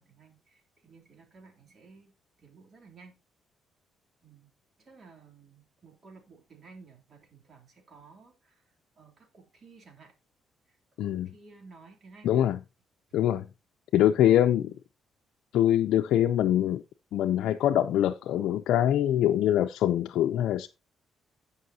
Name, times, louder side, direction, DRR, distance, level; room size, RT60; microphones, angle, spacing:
voice 1, 0.0-3.2 4.2-4.5 4.8-8.6 8.9-10.1 10.7-10.8 11.1-12.5, right 4 dB, 50° right, 3.1 m, -54 dB
voice 2, 11.0-11.3 12.2-12.6 13.1-13.5 13.9-14.7 15.5-16.8 17.1-20.7, left 11 dB, 80° left, 0.4 m, -24 dB
16.0 x 5.5 x 2.8 m
cardioid pair, 90°, 0 cm